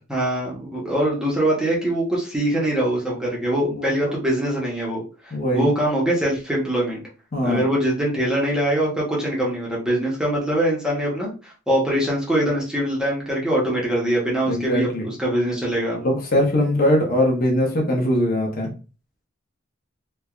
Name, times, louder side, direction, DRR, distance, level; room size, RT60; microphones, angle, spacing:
voice 1, 0.1-7.0 7.4-16.0, right 1 dB, 5° right, -5 dB, 0.7 m, -23 dB
voice 2, 3.8-4.1 5.3-5.7 7.3-7.6 14.5-15.1 16.0-18.7, left 1 dB, 45° left, 1 dB, 0.6 m, -21 dB
3.2 x 2.1 x 2.3 m, 0.35 s
head